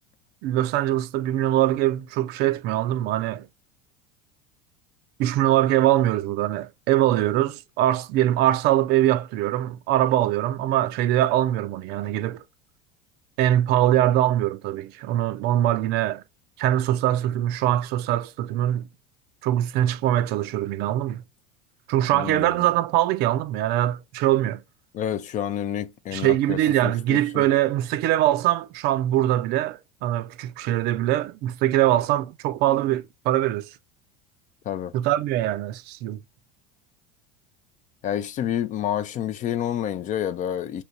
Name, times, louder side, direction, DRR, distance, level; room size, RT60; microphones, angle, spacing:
voice 1, 0.4-3.5 5.2-12.4 13.4-16.2 16.6-18.9 19.4-21.2 21.9-24.6 26.1-33.7 34.9-36.2, right 13 dB, 50° right, 0.4 m, -22 dB
voice 2, 22.1-22.6 24.9-27.4 34.7-34.9 38.0-40.8, left 10 dB, 35° left, 0.4 m, -29 dB
3.2 x 2.8 x 2.6 m
hypercardioid pair, 85°, 21 cm